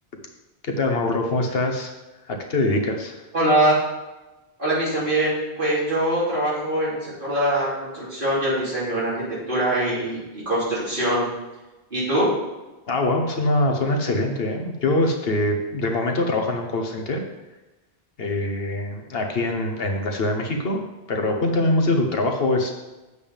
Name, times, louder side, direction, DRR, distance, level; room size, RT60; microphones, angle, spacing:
voice 1, 0.6-1.9 2.3-3.1 12.9-17.2 18.2-20.8 21.1-22.7, left 2 dB, 70° left, 3 dB, 1.2 m, -23 dB
voice 2, 3.3-3.8 4.6-9.1 9.5-10.2 10.4-11.3 11.9-12.3, right 1 dB, 55° right, -8 dB, 3.3 m, -22 dB
8.2 x 7.1 x 3.5 m, 1.1 s
omnidirectional pair, 1.1 m